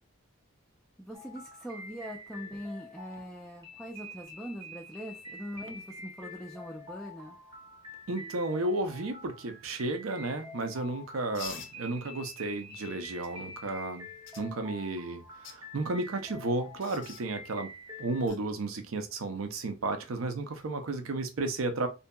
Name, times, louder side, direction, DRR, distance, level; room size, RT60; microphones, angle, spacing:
voice 1, 1.0-7.4, equal, ahead, 0.3 m, -42 dB
sound 1, 1.1-18.3, left 1 dB, 20° right, 0.7 m, -47 dB
voice 2, 8.1-14.1 14.3-17.7 18.0-21.9, right 2 dB, 80° right, 0.6 m, -33 dB
sound 2, 11.3-11.7 13.2-13.3 14.3-14.4 15.3-15.6 16.8-17.2 18.3-18.4 20.4-20.6, left 6 dB, 65° left, 0.6 m, -44 dB
2.7 x 2.6 x 2.2 m
head